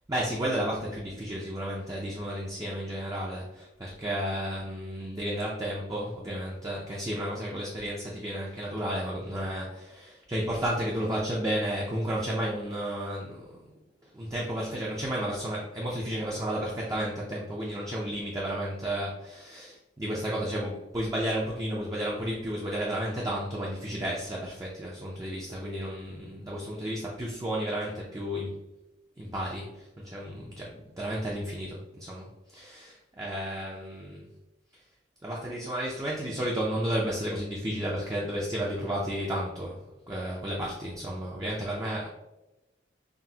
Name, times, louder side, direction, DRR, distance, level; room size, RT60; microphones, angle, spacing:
voice 1, 0.1-13.4 14.1-28.6 29.2-34.3 35.2-39.8 40.1-42.1, equal, 20° right, -4 dB, 0.4 m, -32 dB
5.8 x 2.1 x 2.7 m, 1.0 s
head